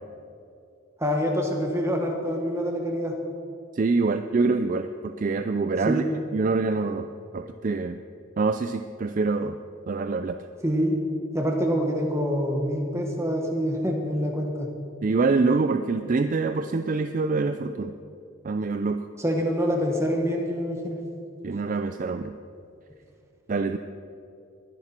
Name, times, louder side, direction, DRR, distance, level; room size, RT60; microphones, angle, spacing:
voice 1, 1.0-3.2 5.8-6.1 10.6-11.0 11.3-14.7 19.2-21.0, equal, 15° right, 1 dB, 1.5 m, -26 dB
voice 2, 3.7-6.0 6.3-7.1 7.3-8.0 8.4-9.5 9.9-10.4 15.0-17.9 18.4-19.1 21.4-22.3 23.5-23.8, right 3 dB, 35° right, 8 dB, 0.4 m, -25 dB
22.0 x 10.0 x 4.4 m, 2.6 s
head